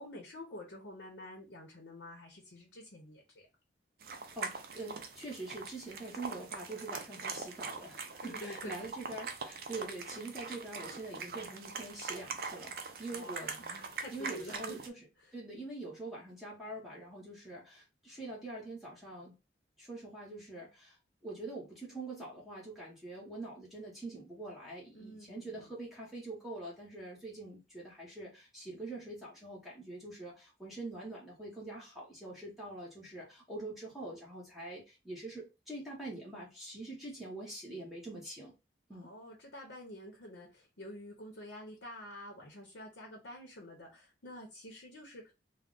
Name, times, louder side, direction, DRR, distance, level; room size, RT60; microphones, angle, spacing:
voice 1, 0.0-3.5 8.2-8.9 13.1-14.8 15.2-15.3 24.9-25.7 38.9-45.3, left 1 dB, 80° left, 0.8 m, -48 dB
sound 1, 4.0-14.9, right 4 dB, 50° right, 0.4 m, -43 dB
voice 2, 4.3-13.5 14.1-15.0 15.3-19.3 19.8-21.0 21.2-38.5 38.9-39.1, right 2 dB, ahead, 0.8 m, -44 dB
2.4 x 2.0 x 3.7 m
head